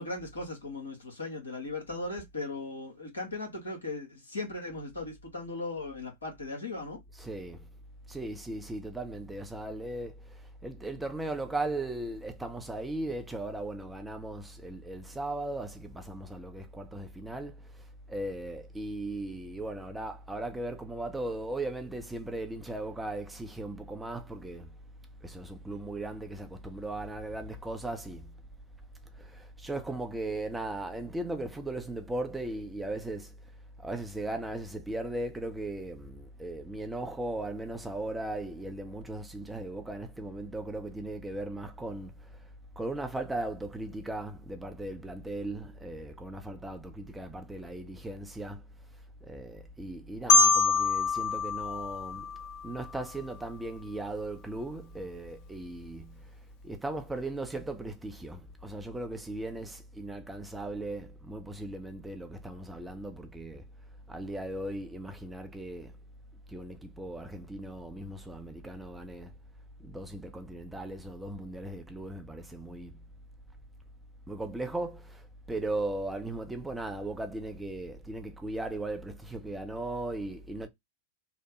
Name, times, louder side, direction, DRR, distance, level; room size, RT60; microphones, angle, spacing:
voice 1, 0.0-7.0, left 2 dB, 75° left, 1.5 m, -38 dB
voice 2, 7.1-7.6 8.1-10.1 10.6-17.6 18.1-24.7 25.2-28.3 29.2-33.3 33.8-42.1 42.8-48.6 49.2-52.3 52.6-56.2 56.6-63.6 64.1-65.9 66.5-69.3 69.8-73.0 74.3-80.7, right 2 dB, 10° right, 0.6 m, -37 dB
Marimba xylophone, 50.3-53.1, left 4 dB, 45° left, 0.5 m, -25 dB
3.2 x 2.1 x 2.9 m
figure-of-eight pair, 90°, 0 cm